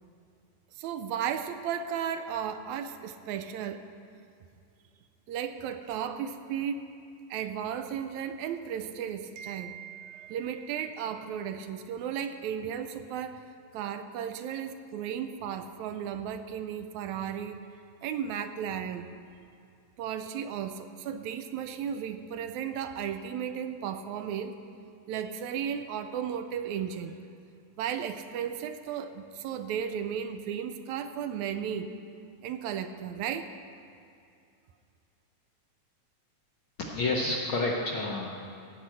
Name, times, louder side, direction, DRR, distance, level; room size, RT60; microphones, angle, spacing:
voice 1, 0.8-3.8 5.3-6.8 7.3-13.4 13.7-17.6 18.0-19.1 20.0-24.6 25.1-27.2 27.8-31.9 32.4-33.6, right 8 dB, 80° right, 9 dB, 1.9 m, -34 dB
voice 2, 36.8-38.4, left 2 dB, 65° left, -2 dB, 1.3 m, -29 dB
16.5 x 5.6 x 7.5 m, 2.5 s
omnidirectional pair, 3.4 m